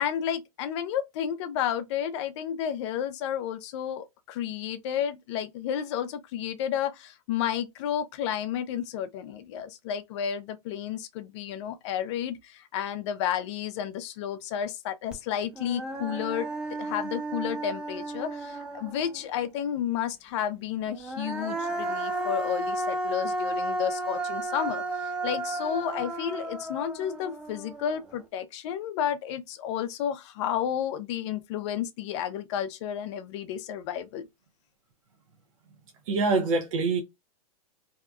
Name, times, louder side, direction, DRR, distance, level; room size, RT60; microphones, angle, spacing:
voice 1, 0.0-34.3, left 9 dB, 50° left, 0.5 m, -32 dB
Human voice, 15.1-15.2 15.6-19.2 20.9-28.1, right 2 dB, 5° right, 0.6 m, -33 dB
voice 2, 36.1-37.0, right 3 dB, 60° right, 0.6 m, -24 dB
2.7 x 2.2 x 2.3 m
hypercardioid pair, 120°, 19 cm